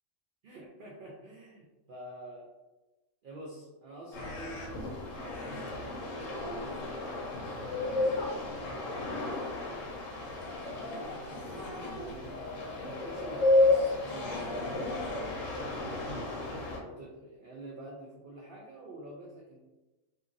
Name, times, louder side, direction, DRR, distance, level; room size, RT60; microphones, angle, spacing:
voice 1, 0.4-2.5 3.2-8.2 8.9-9.6 10.6-11.7 12.0-12.3 12.8-14.9 15.4-16.1 16.8-19.6, right 2 dB, 75° right, -4 dB, 0.4 m, -48 dB
sound 1, 4.1-16.8, left 2 dB, 75° left, 1.0 m, -32 dB
2.8 x 2.5 x 2.5 m, 1.1 s
omnidirectional pair, 1.4 m